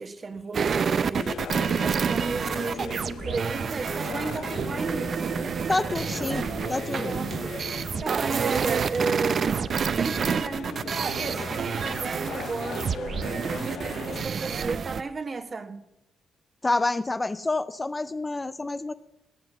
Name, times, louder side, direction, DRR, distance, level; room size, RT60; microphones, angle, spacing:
voice 1, 0.0-5.1 7.0-13.2 13.5-15.9, right 4 dB, 35° right, 1.3 m, -34 dB
sound 1, 0.5-15.0, right 6 dB, 50° right, 0.6 m, -28 dB
sound 2, 1.1-14.3, left 8 dB, 70° left, 0.8 m, -39 dB
voice 2, 5.7-7.1 16.6-18.9, left 2 dB, 20° left, 0.5 m, -28 dB
19.0 x 7.7 x 6.8 m
cardioid pair, 90°, 0 cm